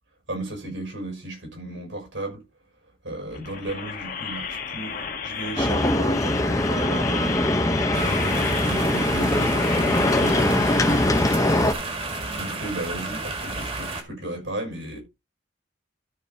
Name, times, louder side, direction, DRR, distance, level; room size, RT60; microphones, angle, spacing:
voice 1, 0.3-2.4 3.0-7.4 7.9-11.5 12.1-15.0, right 1 dB, 80° right, 5.8 m, -35 dB
sound 1, 3.3-11.3, left 6 dB, 45° left, 1.6 m, -33 dB
sound 2, 5.6-11.7, left 1 dB, 15° left, 0.9 m, -22 dB
sound 3, 7.9-14.0, right 3 dB, 30° right, 2.0 m, -32 dB
13.0 x 5.1 x 4.0 m
head